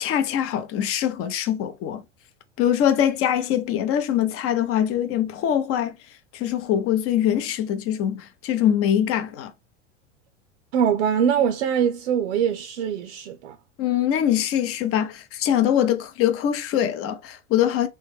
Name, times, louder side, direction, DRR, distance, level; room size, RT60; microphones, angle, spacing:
voice 1, 0.0-2.0 2.6-5.9 6.3-9.5 13.8-17.9, left 10 dB, 40° left, 0.6 m, -23 dB
voice 2, 10.7-13.6, right 8 dB, 75° right, 0.5 m, -23 dB
3.1 x 2.1 x 3.3 m
hypercardioid pair, 90°, 37 cm